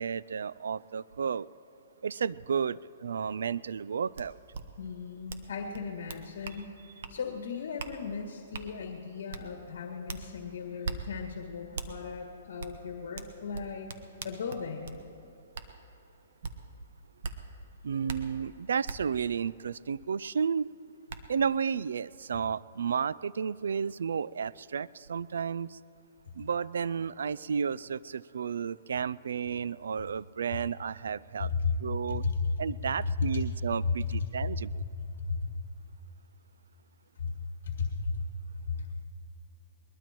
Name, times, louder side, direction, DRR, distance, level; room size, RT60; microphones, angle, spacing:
voice 1, 0.0-1.5 2.0-4.4 17.8-20.7 21.3-25.8 26.4-31.5 31.8-32.2 32.6-34.8, right 6 dB, 85° right, 20 dB, 0.3 m, -32 dB
sound 1, 4.2-4.3 4.5-4.6 5.3-5.5 5.7-6.6 7.0-7.2 7.8-7.9 8.5-8.7 9.3-9.4 10.1-10.2 10.8-11.0 11.8-11.9 12.6-12.7 13.2-15.0 15.5-15.7 16.4-16.5 17.2-17.4 18.1-18.2 18.9-19.0 20.5-20.6 21.1-21.2, right 4 dB, 65° right, 1.1 m, -38 dB
voice 2, 4.8-6.8 7.1-13.9 14.2-14.9 31.4-31.8 32.1-35.5 37.2-37.4 37.6-38.2 38.7-39.1, left 4 dB, 70° left, 2 dB, 1.8 m, -35 dB
21.5 x 21.0 x 3.0 m, 2.9 s
hypercardioid pair, 160°, 0 cm